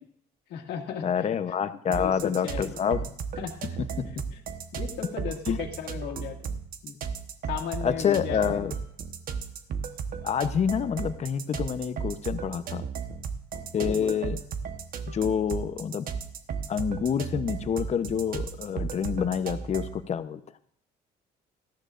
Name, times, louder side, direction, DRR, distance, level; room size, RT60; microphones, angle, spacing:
voice 1, 0.5-1.3 1.9-2.7 3.4-3.6 4.3-4.4 4.7-6.5 6.8-7.0 7.5-8.6 13.5-14.2, left 8 dB, 80° left, 1 dB, 2.1 m, -36 dB
voice 2, 1.0-3.1 4.0-4.2 5.5-5.6 7.8-8.7 10.2-12.8 13.7-14.4 15.1-16.1 16.7-20.4, left 7 dB, 40° left, 11 dB, 0.8 m, -27 dB
sound 1, 1.9-20.0, right 6 dB, 60° right, 1.1 m, -35 dB
18.5 x 13.5 x 2.5 m, 0.63 s
cardioid pair, 110°, 17 cm